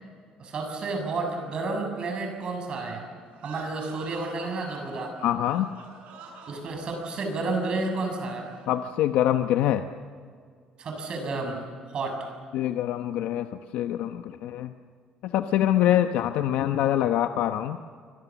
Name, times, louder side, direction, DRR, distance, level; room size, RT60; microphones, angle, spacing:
voice 1, 0.4-3.1 3.4-5.2 6.5-8.5 10.8-11.6 11.9-12.3, right 3 dB, 40° right, 4 dB, 6.6 m, -31 dB
sound 1, 3.3-8.8, right 3 dB, 70° right, 7.9 m, -46 dB
voice 2, 5.2-5.7 8.7-9.8 12.5-13.5 13.7-14.7 15.2-17.8, left 12 dB, 85° left, 7 dB, 0.9 m, -24 dB
27.5 x 24.5 x 7.2 m, 2.1 s
cardioid pair, 160°, 2 cm